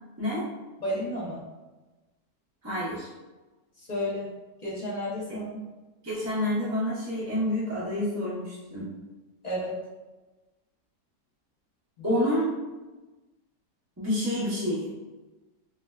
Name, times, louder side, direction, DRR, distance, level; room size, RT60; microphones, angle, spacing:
voice 1, 0.8-1.4 3.8-4.3 4.6-5.6 9.4-9.8 12.0-12.2, left 1 dB, 50° left, -7 dB, 0.5 m, -31 dB
voice 2, 2.6-3.1 5.3-5.4 6.0-8.9 12.0-12.4 14.0-14.9, left 1 dB, 20° right, -8 dB, 0.5 m, -28 dB
4.9 x 2.1 x 2.3 m, 1.2 s
omnidirectional pair, 1.8 m